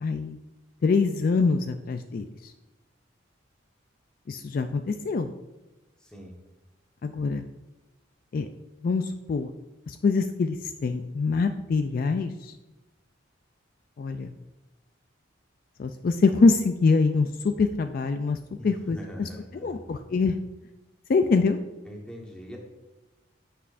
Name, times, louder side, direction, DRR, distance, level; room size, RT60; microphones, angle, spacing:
voice 1, 0.0-0.4 0.8-2.5 4.3-5.3 7.0-7.5 8.3-8.5 8.8-9.5 9.9-12.6 14.0-14.3 15.8-18.4 18.6-19.3 19.6-20.4 21.1-21.6, left 4 dB, 45° left, 8 dB, 0.3 m, -24 dB
voice 2, 6.0-6.3 18.6-19.8 21.8-22.6, equal, 5° left, -1 dB, 1.2 m, -42 dB
9.5 x 5.7 x 2.5 m, 1.1 s
head